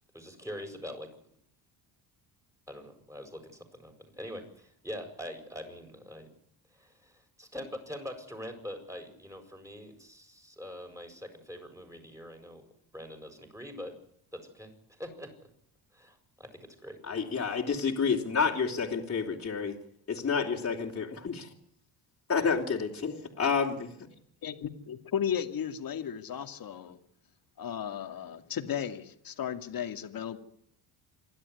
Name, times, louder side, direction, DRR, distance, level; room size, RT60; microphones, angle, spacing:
voice 1, 0.1-1.1 2.7-6.3 6.7-12.7 12.9-14.0 14.3-15.3 15.9-17.0, equal, 5° right, 4 dB, 7.2 m, -43 dB
voice 2, 17.1-19.8 20.1-21.5 22.3-23.9, left 5 dB, 30° left, -3 dB, 3.7 m, -29 dB
voice 3, 24.4-27.0 27.6-30.4, left 8 dB, 50° left, 7 dB, 2.5 m, -35 dB
27.5 x 12.5 x 9.8 m, 0.71 s
cardioid pair, 90°, 44 cm